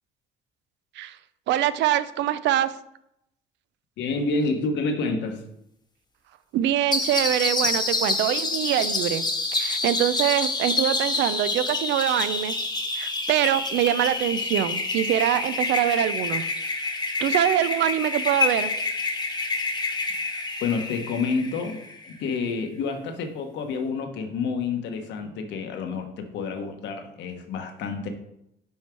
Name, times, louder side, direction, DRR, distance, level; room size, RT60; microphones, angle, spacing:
voice 1, 1.5-2.7 6.5-9.2 9.5-12.6 13.0-16.4 17.2-18.7, right 12 dB, 75° right, 15 dB, 0.5 m, -24 dB
voice 2, 4.0-5.4 20.6-28.1, left 4 dB, 75° left, 5 dB, 1.1 m, -29 dB
sound 1, 6.9-22.1, left 3 dB, 20° left, 1.1 m, -27 dB
5.6 x 4.7 x 4.5 m, 0.79 s
cardioid pair, 95°, 19 cm